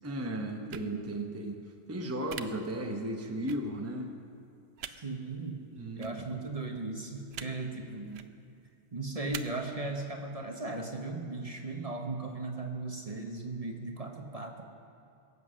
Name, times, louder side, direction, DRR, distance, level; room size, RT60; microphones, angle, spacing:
voice 1, 0.0-1.6 1.9-4.1 5.7-6.3, right 1 dB, 15° right, 2 dB, 0.9 m, -35 dB
voice 2, 0.6-1.5 2.5-2.6 5.0-5.7 6.0-8.2 8.9-14.6, right 3 dB, 35° right, 3 dB, 1.1 m, -37 dB
sound 1, 0.7-0.9 2.3-2.4 3.5-3.6 4.8-4.9 6.0-6.1 7.3-7.5 8.1-8.3 9.3-9.4, right 9 dB, 70° right, 0.9 m, -40 dB
22.5 x 8.1 x 6.3 m, 2.5 s
omnidirectional pair, 1.1 m